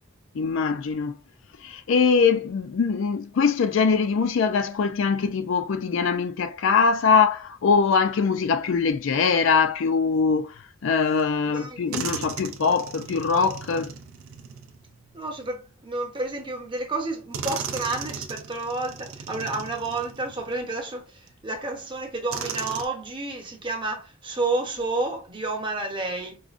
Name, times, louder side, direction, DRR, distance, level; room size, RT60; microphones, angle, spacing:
voice 1, 0.3-1.2 1.6-10.5 10.8-13.9, left 5 dB, 65° left, 0.4 m, -22 dB
sound 1, 11.2-11.3 11.9-15.5 16.5-16.6 17.3-20.7 21.3-21.4 22.3-22.9, right 6 dB, 80° right, 0.5 m, -36 dB
voice 2, 11.4-12.1 15.1-26.4, right 2 dB, 25° right, 0.8 m, -30 dB
4.8 x 2.1 x 2.5 m
head